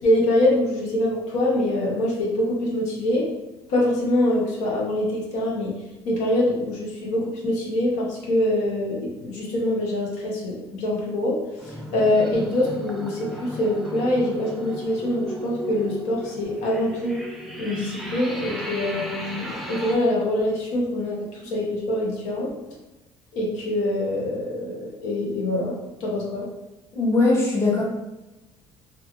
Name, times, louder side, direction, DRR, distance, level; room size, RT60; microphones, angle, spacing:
voice 1, 0.0-3.3 3.7-5.7 6.0-11.4 11.6-17.2 17.6-21.2 21.4-22.5 23.3-25.7 26.0-26.5, left 1 dB, 80° left, -3 dB, 0.8 m, -24 dB
sound 1, 11.6-20.0, equal, ahead, 0.4 m, -36 dB
voice 2, 26.9-27.8, left 3 dB, 25° left, -3 dB, 0.7 m, -20 dB
2.6 x 2.3 x 2.8 m, 1.0 s
cardioid pair, 120°, 11 cm